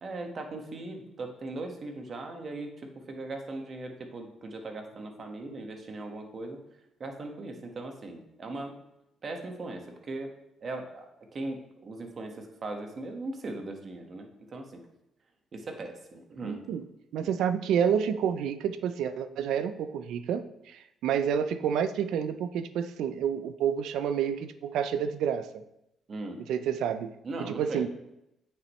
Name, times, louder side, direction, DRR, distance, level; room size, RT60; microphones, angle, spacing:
voice 1, 0.0-6.6 7.0-8.8 9.2-10.3 10.6-14.8 15.5-16.6 26.1-26.4 27.2-27.9, right 2 dB, 45° right, 3 dB, 1.5 m, -39 dB
voice 2, 16.4-16.8 17.1-25.6 26.5-27.1 27.4-27.9, right 8 dB, 85° right, 11 dB, 0.5 m, -29 dB
9.0 x 6.8 x 3.2 m, 0.85 s
cardioid pair, 90°, 0 cm